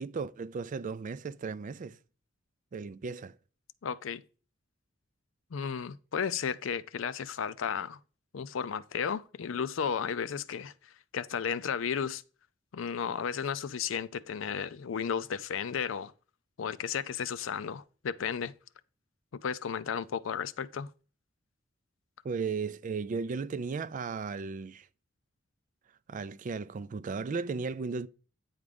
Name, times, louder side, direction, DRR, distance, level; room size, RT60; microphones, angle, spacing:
voice 1, 0.0-2.0 2.7-3.4 22.2-24.9 26.1-28.1, right 4 dB, 40° right, 0.4 m, -35 dB
voice 2, 3.8-4.2 5.5-8.0 8.3-12.2 12.7-16.1 16.6-18.5 19.4-20.9, left 7 dB, 75° left, 0.4 m, -34 dB
9.4 x 3.6 x 5.1 m
head